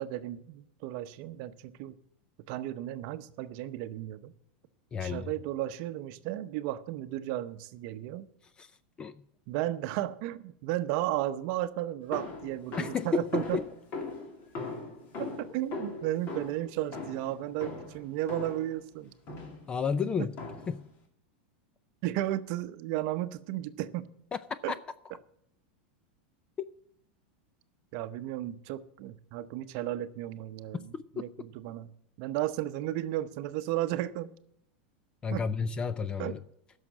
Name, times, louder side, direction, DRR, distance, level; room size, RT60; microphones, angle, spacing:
voice 1, 0.0-2.0 2.5-4.3 5.0-8.3 9.5-13.6 15.2-19.1 20.2-20.3 22.0-24.1 24.6-24.7 27.9-31.9 32.2-34.3 35.3-35.5 36.2-36.3, right 14 dB, 50° right, 0.8 m, -34 dB
voice 2, 4.9-5.3 8.6-8.7 9.0-9.2 12.8-13.6 19.7-20.3 20.7-20.8 24.3-24.8 30.9-31.0 35.2-36.4, left 5 dB, 15° left, 0.3 m, -31 dB
sound 1, 12.1-18.8 19.3-19.7 20.4-20.9, left 3 dB, 35° left, 2.6 m, -40 dB
11.0 x 6.5 x 8.7 m
supercardioid pair, 155°, 5 cm